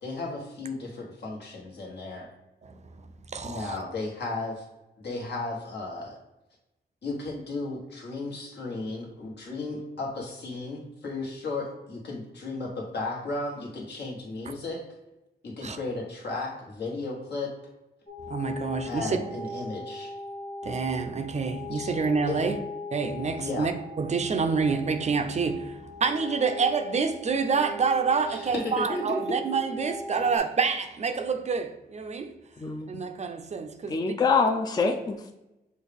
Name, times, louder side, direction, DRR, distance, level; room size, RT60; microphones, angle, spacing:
voice 1, 0.0-2.3 3.4-4.6 5.0-6.2 7.0-14.8 15.4-17.5 18.8-20.1 21.7-21.9 22.3-22.4 23.4-23.7 28.3-28.5 28.8-29.4, left 3 dB, 75° left, 1.3 m, -34 dB
voice 2, 3.3-3.8 15.6-15.8 18.3-19.2 20.6-22.6 22.9-23.7 24.0-32.4 32.9-33.9, right 5 dB, 40° right, 0.4 m, -27 dB
sound 1, 18.1-30.4, left 1 dB, 55° left, 1.2 m, -39 dB
voice 3, 32.6-33.0 33.9-35.4, left 4 dB, 25° left, 0.4 m, -25 dB
6.3 x 2.3 x 3.4 m
wide cardioid pair, 100°, 17 cm